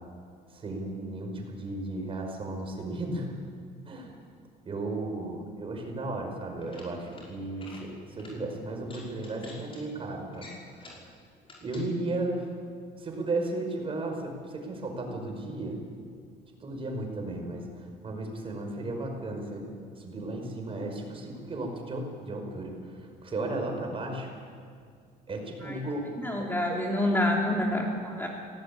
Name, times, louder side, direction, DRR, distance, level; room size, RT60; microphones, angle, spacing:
voice 1, 0.5-3.3 3.9-4.1 4.7-11.1 11.6-12.5 13.0-15.8 16.6-19.7 20.0-24.3 25.3-26.1 26.4-26.8, right 2 dB, 35° right, 2 dB, 5.4 m, -35 dB
sound 1, 6.6-7.2 7.5-7.8 8.2-8.3 8.8-9.8 10.3-11.1 11.4-11.9, left 2 dB, 30° left, 6.0 m, -49 dB
voice 2, 26.2-28.3, left 1 dB, 10° left, -1 dB, 2.9 m, -27 dB
18.0 x 18.0 x 8.9 m, 2.2 s
cardioid pair, 110°, 17 cm